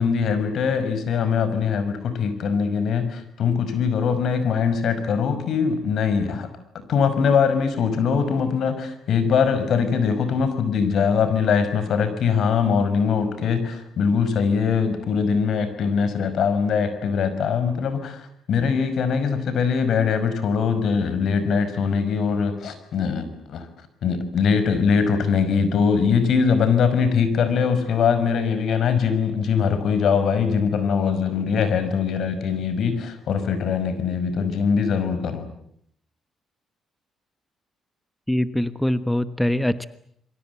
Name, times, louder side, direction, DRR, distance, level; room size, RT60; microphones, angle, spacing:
voice 1, 0.0-6.5 6.7-23.7 24.0-35.4, left 6 dB, 70° left, 11 dB, 5.5 m, -22 dB
voice 2, 38.3-39.9, left 1 dB, 5° left, 12 dB, 1.1 m, -23 dB
29.0 x 23.5 x 8.3 m, 0.71 s
cardioid pair, 90°, 0 cm